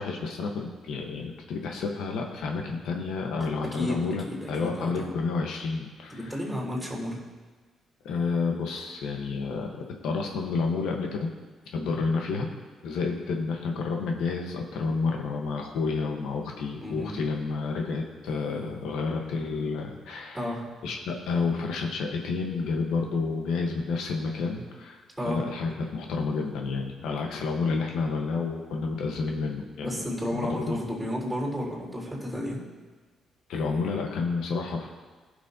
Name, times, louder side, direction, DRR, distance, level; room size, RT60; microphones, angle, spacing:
voice 1, 0.0-6.3 8.0-11.3 11.7-12.6 12.8-20.6 20.8-30.8 33.5-34.9, left 4 dB, 85° left, 2 dB, 1.1 m, -30 dB
voice 2, 3.6-5.1 6.1-7.2 16.8-17.2 20.3-20.7 25.2-25.5 29.8-32.6, left 1 dB, 10° right, -3 dB, 3.4 m, -32 dB
18.0 x 6.3 x 2.8 m, 1.4 s
cardioid pair, 90°, 0 cm